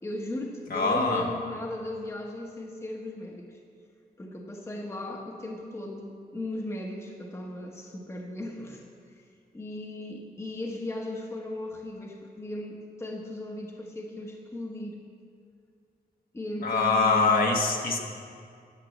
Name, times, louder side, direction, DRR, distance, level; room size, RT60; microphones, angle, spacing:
voice 1, 0.0-3.6 4.2-8.8 9.5-15.0 16.3-17.5, left 1 dB, 15° left, 0 dB, 1.1 m, -37 dB
voice 2, 0.7-1.2 16.6-18.0, left 3 dB, 65° left, 1 dB, 1.4 m, -23 dB
11.5 x 7.8 x 7.3 m, 2.2 s
wide cardioid pair, 160°, 16 cm